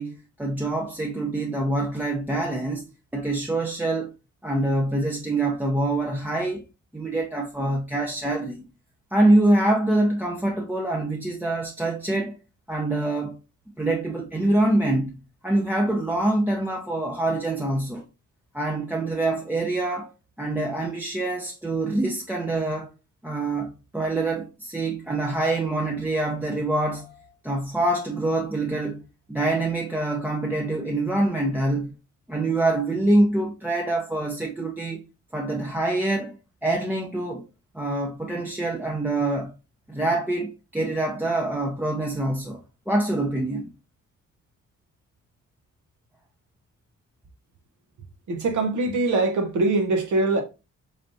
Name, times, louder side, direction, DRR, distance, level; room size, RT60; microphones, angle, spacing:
voice 1, 0.0-4.1 4.4-6.6 6.9-8.6 9.1-12.4 12.7-13.4 13.8-18.0 18.5-20.1 20.4-22.9 23.2-29.0 29.3-32.0 32.3-35.0 35.3-36.4 36.6-37.4 37.7-39.5 39.9-42.6 42.9-43.7, right 2 dB, 5° right, 0.6 m, -25 dB
voice 2, 48.3-50.4, right 2 dB, 80° right, 0.9 m, -23 dB
3.8 x 3.4 x 2.6 m
cardioid pair, 90°, 30 cm